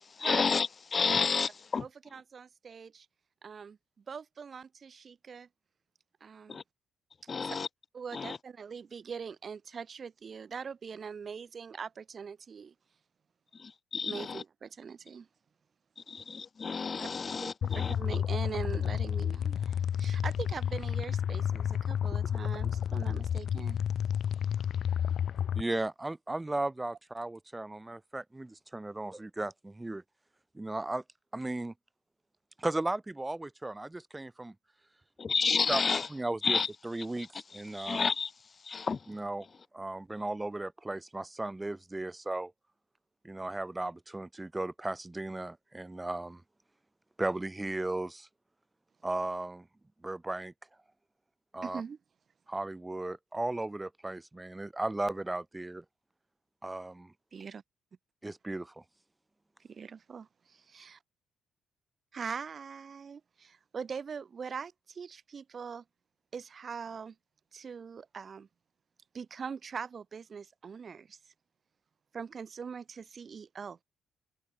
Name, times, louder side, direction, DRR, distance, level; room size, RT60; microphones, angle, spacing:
voice 1, 0.1-1.8 6.5-6.6 7.3-7.7 8.1-8.4 13.5-14.4 16.0-17.9 35.2-36.1 36.4-36.7 37.5-38.3 38.6-39.1, left 5 dB, 35° left, 1.6 m, -31 dB
voice 2, 1.8-3.1 3.4-3.8 4.1-5.5 6.2-6.6 7.2-7.6 7.9-12.7 14.0-15.3 17.0-17.1 17.4-23.8 51.6-52.0 57.3-57.6 59.6-61.0 62.1-65.8 66.3-67.1 67.5-68.5 69.1-71.2 72.1-73.8, right 6 dB, 45° right, 2.2 m, -42 dB
sound 1, 17.6-25.6, left 9 dB, 60° left, 0.5 m, -31 dB
voice 3, 25.5-30.0 30.5-31.0 31.3-31.7 32.6-34.5 35.7-35.8 36.1-36.6 36.8-38.1 39.1-39.5 39.7-42.5 43.2-46.4 47.2-48.3 49.0-49.7 50.0-50.5 51.5-51.8 52.5-55.8 56.6-57.1 58.2-58.8, right 2 dB, 15° right, 3.9 m, -36 dB
cardioid pair, 90°, 0 cm